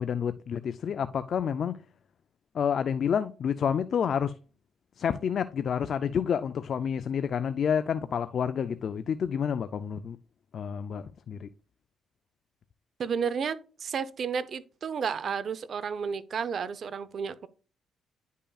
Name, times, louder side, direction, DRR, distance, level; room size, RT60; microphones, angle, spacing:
voice 1, 0.0-1.8 2.5-4.3 5.0-10.2 10.5-11.5, left 7 dB, 55° left, 0.4 m, -29 dB
voice 2, 13.0-17.5, right 6 dB, 55° right, 0.6 m, -32 dB
9.9 x 5.5 x 2.3 m
cardioid pair, 90°, 0 cm